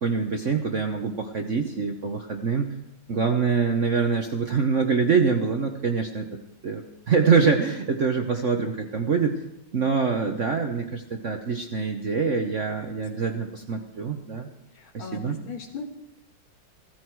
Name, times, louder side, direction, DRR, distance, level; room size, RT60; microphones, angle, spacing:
voice 1, 0.0-2.7 3.1-6.3 6.6-9.4 9.7-14.5 14.9-15.4, right 5 dB, 50° right, 5 dB, 0.9 m, -25 dB
voice 2, 14.7-15.8, left 5 dB, 70° left, 4 dB, 2.5 m, -38 dB
15.5 x 14.5 x 4.7 m, 0.85 s
omnidirectional pair, 2.3 m